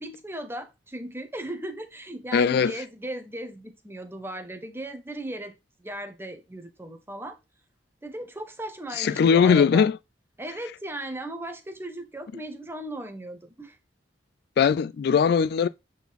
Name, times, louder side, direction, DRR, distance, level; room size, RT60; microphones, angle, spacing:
voice 1, 0.0-5.5 5.8-7.4 8.0-9.9 10.4-13.8, right 1 dB, 15° right, 1.1 m, -37 dB
voice 2, 2.3-2.7 9.0-10.0 14.6-15.7, left 6 dB, 60° left, 0.3 m, -20 dB
8.1 x 4.0 x 4.1 m
head